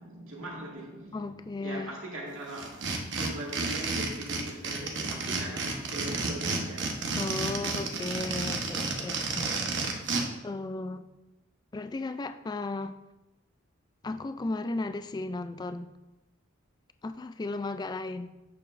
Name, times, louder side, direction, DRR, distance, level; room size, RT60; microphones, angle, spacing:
voice 1, 0.0-7.0, right 1 dB, 90° right, -3 dB, 2.0 m, -40 dB
voice 2, 1.1-1.9 7.2-9.5 10.4-11.1 11.7-12.9 14.0-15.9 17.0-18.3, left 2 dB, 20° left, 10 dB, 0.3 m, -35 dB
sound 1, 2.6-10.2, right 3 dB, 65° right, 1.1 m, -31 dB
8.5 x 6.8 x 2.6 m, 1.0 s
head